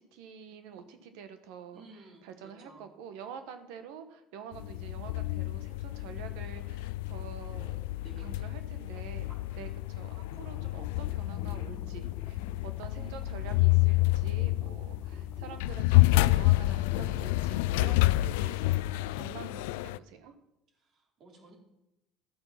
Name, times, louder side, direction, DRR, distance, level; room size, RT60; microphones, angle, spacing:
voice 1, 0.0-1.8 2.2-7.8 8.2-9.3 9.5-20.3, right 7 dB, 80° right, 9 dB, 1.3 m, -47 dB
voice 2, 1.7-2.9 8.0-8.6 9.3-9.8 13.0-13.3 19.3-19.7 20.7-21.5, right 3 dB, 50° right, 1 dB, 3.6 m, -54 dB
sound 1, 4.5-20.0, left 18 dB, 90° left, 0.3 m, -29 dB
sound 2, 10.3-17.9, left 6 dB, 30° left, 0.5 m, -46 dB
13.0 x 7.9 x 5.9 m, 0.89 s
supercardioid pair, 100°, 0 cm